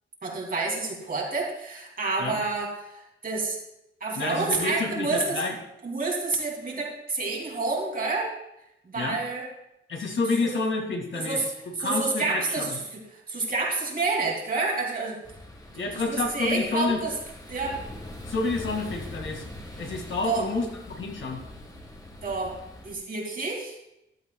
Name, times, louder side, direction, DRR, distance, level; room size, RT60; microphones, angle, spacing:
voice 1, 0.2-3.6 4.0-5.4 5.8-8.3 8.9-9.5 10.4-10.6 11.1-11.5 11.8-15.2 15.9-17.1 17.5-17.8 20.2-20.5 22.2-22.5 22.8-23.7, right 3 dB, 45° right, -1 dB, 2.6 m, -29 dB
voice 2, 4.2-5.5 9.0-9.2 9.9-11.4 11.8-12.8 15.7-17.0 18.3-19.4 19.8-21.4, left 3 dB, 70° left, 2 dB, 2.1 m, -29 dB
sound 1, 15.2-22.9, left 1 dB, 20° left, 1.4 m, -42 dB
14.0 x 12.0 x 2.3 m, 0.85 s
wide cardioid pair, 160°, 21 cm